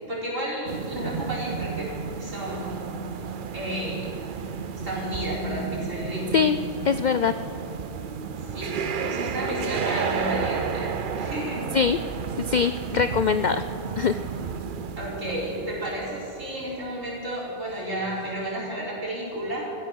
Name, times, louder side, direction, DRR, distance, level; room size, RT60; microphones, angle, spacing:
voice 1, 0.0-1.9 2.2-2.9 3.5-4.1 4.8-6.5 8.4-11.6 14.9-19.6, right 1 dB, 90° right, -6 dB, 5.3 m, -32 dB
sound 1, 0.7-17.3 17.7-17.8 18.4-18.5, right 6 dB, 50° right, 0.7 m, -32 dB
voice 2, 6.8-7.3 11.7-12.0 12.5-13.6 13.9-14.2, left 6 dB, 70° left, 11 dB, 0.4 m, -22 dB
15.5 x 15.0 x 6.3 m, 2.8 s
omnidirectional pair, 1.3 m